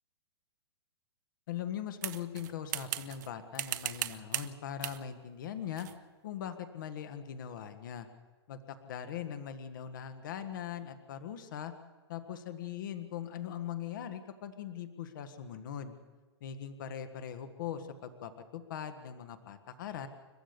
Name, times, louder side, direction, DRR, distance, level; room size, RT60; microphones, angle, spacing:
voice 1, 1.5-5.9 6.2-8.1 8.5-11.7 12.1-15.9 16.4-20.1, left 9 dB, 50° left, 9 dB, 1.6 m, -41 dB
sound 1, 2.0-3.3 3.6-4.5 4.8-5.0 5.8-6.0, right 13 dB, 45° right, 1.1 m, -37 dB
30.0 x 12.5 x 6.9 m, 1.3 s
hypercardioid pair, 165°, 14 cm